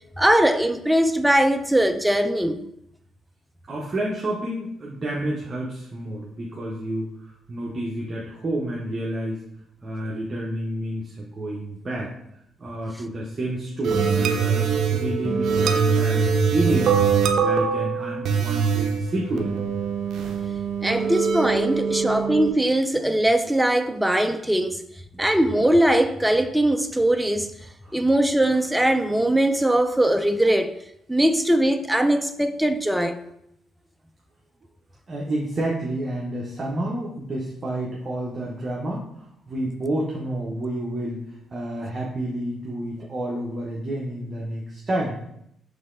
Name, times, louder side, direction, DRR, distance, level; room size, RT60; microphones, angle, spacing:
voice 1, 0.2-2.6 20.8-24.8 25.2-27.5 27.9-30.7 31.1-33.2, right 1 dB, 5° right, 0.3 m, -21 dB
voice 2, 3.7-9.4 9.8-12.1 12.6-17.0 17.4-19.5 20.9-21.1 25.1-25.2 27.8-28.0 35.1-41.2 41.5-45.2, right 1 dB, 35° right, 0.8 m, -29 dB
sound 1, 13.8-22.5, right 6 dB, 70° right, 0.4 m, -23 dB
3.9 x 3.2 x 3.7 m
cardioid pair, 90°, 0 cm